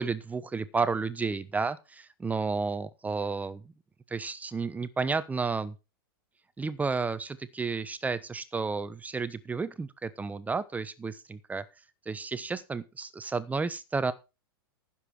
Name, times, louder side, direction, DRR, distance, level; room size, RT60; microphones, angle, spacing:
voice 1, 0.0-3.6 4.1-5.7 6.6-11.6 12.1-14.1, right 4 dB, 10° right, 15 dB, 1.0 m, -32 dB
14.5 x 7.4 x 4.8 m, 0.28 s
hypercardioid pair, 110°, 12 cm